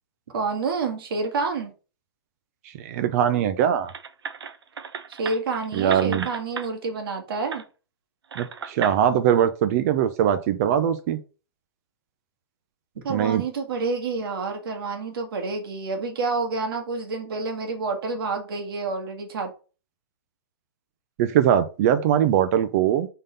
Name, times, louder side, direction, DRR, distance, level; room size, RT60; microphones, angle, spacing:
voice 1, 0.3-1.7 5.2-7.6 13.0-19.5, right 4 dB, 65° right, 3 dB, 2.0 m, -28 dB
voice 2, 2.6-3.9 5.7-6.3 8.4-11.2 13.1-13.4 21.2-23.1, right 9 dB, 40° right, 12 dB, 0.6 m, -21 dB
sound 1, 3.9-6.7 7.5-7.6 8.3-9.0, right 6 dB, 90° right, 0.8 m, -34 dB
5.4 x 3.8 x 5.4 m, 0.35 s
hypercardioid pair, 145°, 13 cm